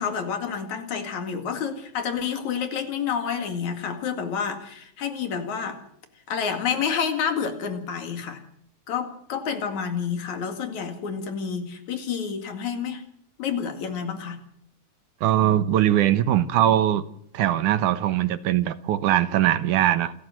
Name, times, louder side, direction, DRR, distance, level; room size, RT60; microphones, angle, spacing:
voice 1, 0.0-5.8 6.3-8.4 8.9-13.0 13.4-14.4, left 7 dB, 65° left, 7 dB, 3.5 m, -29 dB
voice 2, 15.2-17.0 17.3-20.1, right 12 dB, 80° right, 12 dB, 2.5 m, -21 dB
28.0 x 13.0 x 7.7 m, 0.67 s
omnidirectional pair, 3.6 m